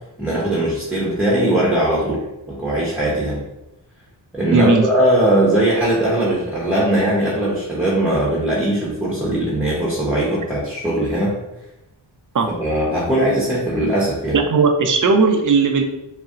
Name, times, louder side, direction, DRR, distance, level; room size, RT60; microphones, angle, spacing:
voice 1, 0.2-3.4 4.3-11.4 12.5-14.4, right 1 dB, 5° right, -7 dB, 0.8 m, -20 dB
voice 2, 4.5-4.8 12.3-12.5 14.3-15.8, right 4 dB, 40° right, 5 dB, 0.5 m, -16 dB
4.0 x 2.1 x 2.4 m, 0.93 s
cardioid pair, 55°, 48 cm